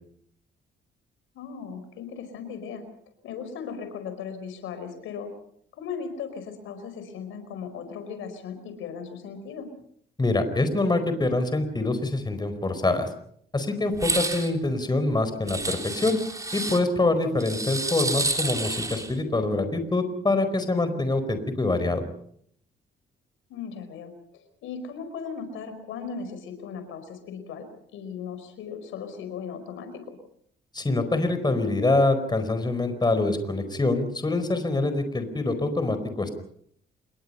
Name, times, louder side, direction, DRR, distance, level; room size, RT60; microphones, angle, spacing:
voice 1, 1.3-2.8 3.2-5.3 5.7-9.7 14.8-15.1 23.5-27.7 27.9-30.2, left 6 dB, 90° left, 9 dB, 4.9 m, -37 dB
voice 2, 10.2-13.1 13.5-16.2 16.5-22.0 30.7-36.3, left 2 dB, 20° left, 9 dB, 4.6 m, -25 dB
sound 1, 13.9-14.5 15.5-16.8 17.4-19.1, right 2 dB, 15° right, 3.7 m, -29 dB
28.0 x 21.5 x 5.7 m, 0.66 s
cardioid pair, 90°, 20 cm